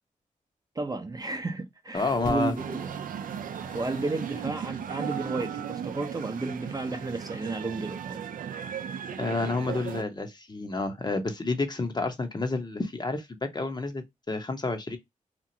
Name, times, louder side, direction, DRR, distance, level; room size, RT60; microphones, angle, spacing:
voice 1, 0.8-2.9 3.7-8.2, right 3 dB, 25° right, 0.6 m, -32 dB
sound 1, 1.9-5.4 5.6-6.5 7.3-7.4, left 2 dB, 70° left, 0.9 m, -45 dB
voice 2, 1.9-2.5 9.2-15.0, left 3 dB, 30° left, 0.7 m, -30 dB
sound 2, 2.6-10.0, right 8 dB, 75° right, 0.4 m, -36 dB
2.9 x 2.4 x 2.6 m
cardioid pair, 70°, 14 cm